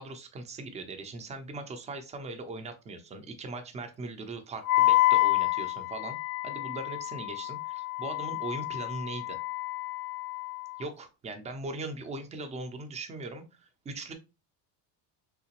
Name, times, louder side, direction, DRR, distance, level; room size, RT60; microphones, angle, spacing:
voice 1, 0.0-6.2 6.4-9.4 10.8-14.1, right 2 dB, 15° right, 6 dB, 0.4 m, -40 dB
Wind instrument woodwind instrument, 4.6-10.8, left 18 dB, 80° left, 0.5 m, -28 dB
3.7 x 2.8 x 2.8 m, 0.29 s
cardioid pair, 145°, 45 cm